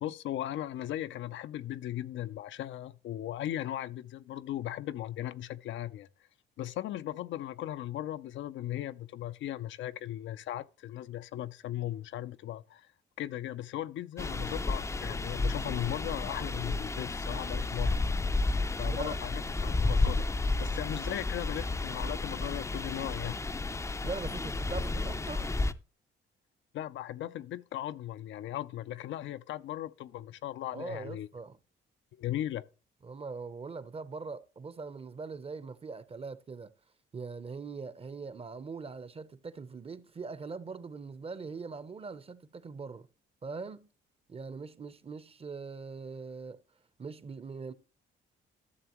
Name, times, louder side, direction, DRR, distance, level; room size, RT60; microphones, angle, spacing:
voice 1, 0.0-6.1 6.6-12.9 13.2-18.0 18.7-20.2 20.6-23.4 26.7-31.3 32.1-32.6, left 13 dB, 75° left, 0.5 m, -37 dB
sound 1, 14.2-25.7, left 3 dB, 15° left, 0.4 m, -32 dB
voice 2, 18.8-19.2 24.0-25.5 30.7-31.6 33.0-36.7 37.1-43.1 43.4-43.9 44.3-46.6 47.0-47.7, right 4 dB, 30° right, 0.7 m, -41 dB
12.5 x 6.9 x 3.0 m
cardioid pair, 90°, 20 cm